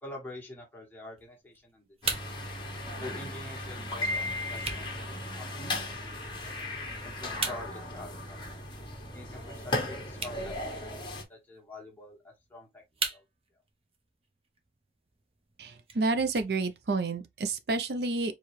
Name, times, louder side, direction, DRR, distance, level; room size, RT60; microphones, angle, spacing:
voice 1, 0.0-1.9 3.0-6.5 7.0-8.5 9.1-12.8 13.1-13.2, left 1 dB, 10° left, 1.5 m, -46 dB
sound 1, 1.2-17.2, right 4 dB, 35° right, 0.8 m, -43 dB
sound 2, 2.0-11.2, left 1 dB, 25° left, 1.3 m, -36 dB
voice 2, 15.6-18.4, right 3 dB, 65° right, 0.5 m, -30 dB
4.6 x 3.1 x 3.1 m
head